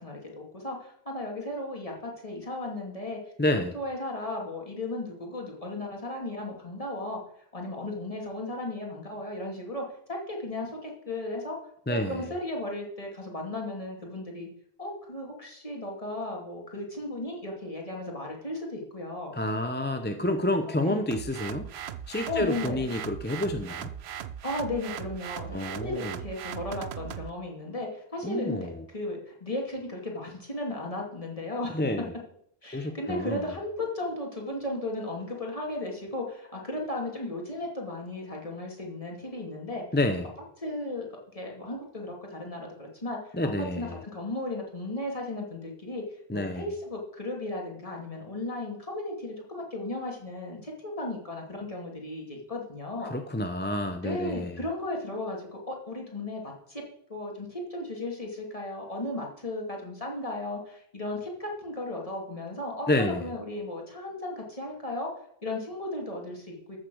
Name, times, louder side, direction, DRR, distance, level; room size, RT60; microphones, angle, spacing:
voice 1, 0.0-7.2 7.5-11.6 11.9-14.5 14.8-19.3 20.8-21.0 22.3-22.8 24.4-31.8 32.6-39.8 40.6-41.1 41.3-46.1 46.3-53.1 54.0-56.8 57.1-62.9 63.2-65.1 65.4-66.8, left 2 dB, 35° left, -1 dB, 2.7 m, -35 dB
voice 2, 3.4-3.7 11.9-12.2 19.3-21.6 22.1-23.9 25.5-26.1 28.2-28.8 31.7-32.1 32.7-33.4 39.9-40.2 43.3-43.9 46.3-46.6 53.0-54.5 62.9-63.3, left 1 dB, 10° left, 6 dB, 0.6 m, -29 dB
sound 1, 21.1-27.3, right 9 dB, 80° right, 0.9 m, -39 dB
14.0 x 6.6 x 6.3 m, 0.69 s
omnidirectional pair, 1.1 m